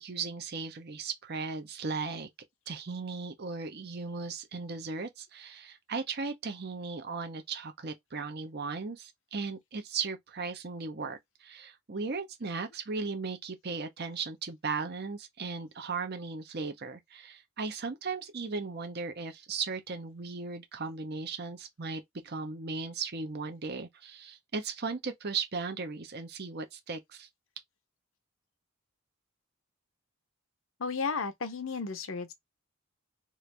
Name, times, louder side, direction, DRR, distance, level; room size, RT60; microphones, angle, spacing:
voice 1, 0.0-2.3 2.7-27.3, right 4 dB, 45° right, 0.7 m, -37 dB
voice 2, 30.8-32.3, left 5 dB, 60° left, 0.7 m, -33 dB
3.1 x 2.5 x 3.2 m
head